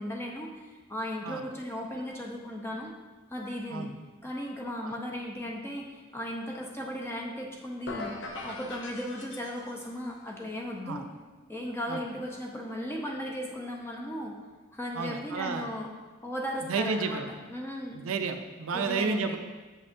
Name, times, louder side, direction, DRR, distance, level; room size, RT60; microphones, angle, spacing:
voice 1, 0.0-2.9 3.3-3.9 4.2-8.1 8.4-11.1 11.5-14.3 14.7-15.9 16.2-18.0 18.7-19.4, equal, 10° left, -1 dB, 0.7 m, -36 dB
sound 1, 7.9-10.0, left 2 dB, 60° left, 0.7 m, -40 dB
voice 2, 14.9-15.7 16.6-17.3 18.0-19.4, right 4 dB, 80° right, 6 dB, 0.5 m, -31 dB
7.2 x 5.4 x 2.7 m, 1.3 s
head